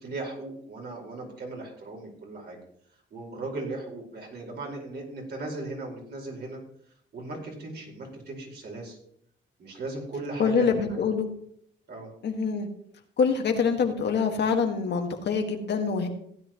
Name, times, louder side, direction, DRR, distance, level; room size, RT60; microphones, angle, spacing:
voice 1, 0.0-2.6 3.1-6.6 7.1-9.0 9.6-11.1 11.9-12.1, right 2 dB, 55° right, -1 dB, 5.0 m, -37 dB
voice 2, 10.4-11.3 12.2-12.7 13.2-16.1, left 5 dB, 60° left, 4 dB, 1.8 m, -25 dB
16.5 x 9.9 x 3.1 m, 0.68 s
cardioid pair, 90°, 20 cm